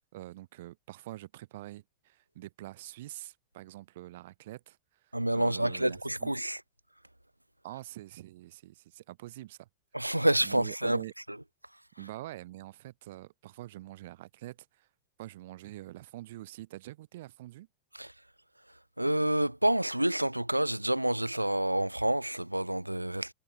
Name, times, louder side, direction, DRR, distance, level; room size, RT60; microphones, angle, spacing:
voice 1, 0.1-4.8 5.0-6.3 7.6-9.7 10.4-11.1 12.0-14.9 15.2-17.7, right 16 dB, 55° right, 3.3 m, -45 dB
voice 2, 5.1-6.6 9.9-11.0 17.9-18.1 19.0-23.3, right 1 dB, 85° right, 0.9 m, -28 dB
figure-of-eight pair, 90°, 0 cm